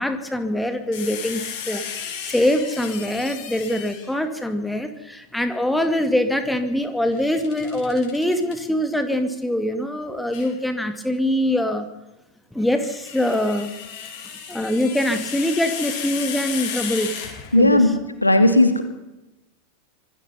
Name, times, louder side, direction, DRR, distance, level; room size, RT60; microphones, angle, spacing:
voice 1, 0.0-11.9 12.5-13.7 14.5-17.1 17.5-18.0, left 1 dB, 5° left, 7 dB, 2.3 m, -23 dB
sound 1, 0.9-4.2 7.1-8.6 10.3-10.5 12.6-17.8, left 7 dB, 45° left, 6.8 m, -34 dB
voice 2, 17.5-17.9 18.2-18.8, left 1 dB, 85° left, 8 dB, 2.5 m, -15 dB
26.0 x 19.0 x 5.6 m, 0.98 s
figure-of-eight pair, 90°, 0 cm